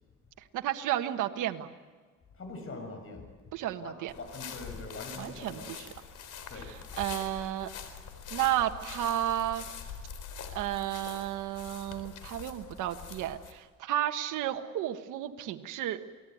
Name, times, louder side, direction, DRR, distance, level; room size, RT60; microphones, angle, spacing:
voice 1, 0.5-1.7 3.5-4.1 5.2-5.9 6.5-7.7 8.3-9.6 10.5-16.0, right 12 dB, 90° right, 6 dB, 1.4 m, -32 dB
voice 2, 2.4-3.3 3.8-5.8 6.5-6.7, left 3 dB, 45° left, 5 dB, 6.9 m, -43 dB
sound 1, 4.1-13.5, left 7 dB, 75° left, 4.1 m, -44 dB
28.5 x 19.5 x 9.4 m, 1.4 s
cardioid pair, 90°, 30 cm